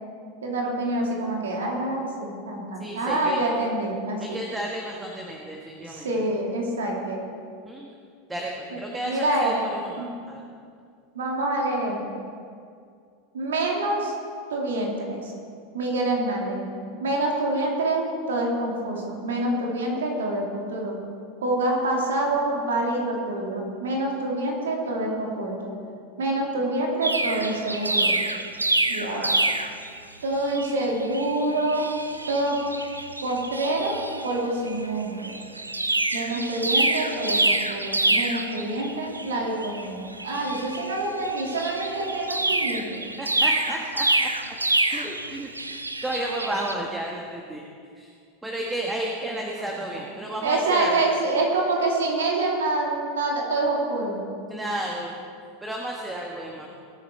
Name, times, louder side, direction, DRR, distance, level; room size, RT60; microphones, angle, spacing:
voice 1, 0.4-4.4 5.9-7.2 8.7-8.8 9.0-9.7 10.0-10.1 11.1-12.0 13.3-14.1 14.5-15.3 15.7-16.7 17.0-21.0 21.4-25.7 26.2-28.2 28.9-29.4 30.2-31.9 32.3-32.6 33.2-33.9 34.2-35.4 36.1-43.0 44.9-45.0 49.6-49.8 50.4-54.2, right 2 dB, 70° right, -1 dB, 2.8 m, -26 dB
voice 2, 2.8-3.5 4.2-6.1 7.6-7.9 8.3-10.4 42.9-44.3 44.9-45.5 46.0-47.7 48.0-48.1 48.4-51.0 54.5-55.2 55.6-56.7, right 1 dB, 10° right, -1 dB, 1.5 m, -32 dB
sound 1, 27.0-30.0 30.5-30.7 31.0-34.4 34.7-34.9 35.2-46.7, right 2 dB, 85° right, 0.6 m, -27 dB
20.0 x 8.7 x 4.4 m, 2.3 s
figure-of-eight pair, 85°, 0 cm